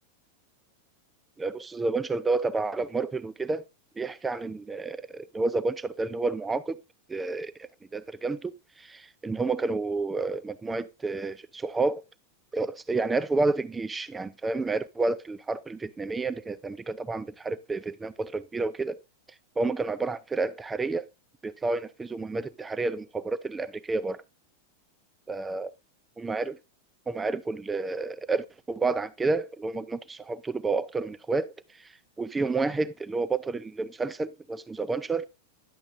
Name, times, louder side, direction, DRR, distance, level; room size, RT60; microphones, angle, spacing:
voice 1, 1.4-3.6 4.0-6.8 7.1-12.0 12.5-19.0 19.6-21.1 21.4-24.2 25.3-25.7 26.2-26.6 27.1-31.5 32.2-35.3, right 3 dB, 10° right, 0.4 m, -30 dB
10.5 x 7.1 x 2.4 m
figure-of-eight pair, 90°, 0 cm